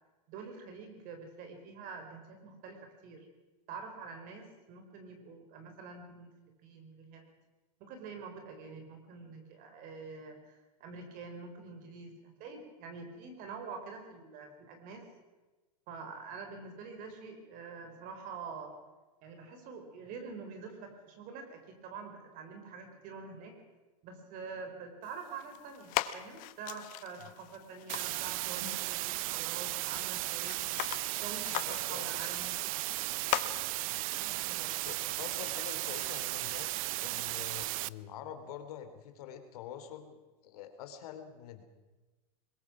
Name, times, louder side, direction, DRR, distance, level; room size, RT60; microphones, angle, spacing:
voice 1, 0.3-3.3 3.7-6.3 6.6-7.3 7.8-15.1 15.9-18.7 19.2-23.5 24.0-30.6 31.2-32.9 34.1-34.8, right 4 dB, 45° right, 5 dB, 4.3 m, -46 dB
sound 1, 25.0-36.6, left 16 dB, 40° left, 1.0 m, -42 dB
sound 2, 27.9-37.9, right 19 dB, 60° right, 0.6 m, -35 dB
voice 2, 31.7-32.1 34.6-36.7 37.0-41.6, left 9 dB, 70° left, 8 dB, 3.0 m, -46 dB
22.0 x 20.5 x 6.1 m, 1.2 s
supercardioid pair, 140°, 20 cm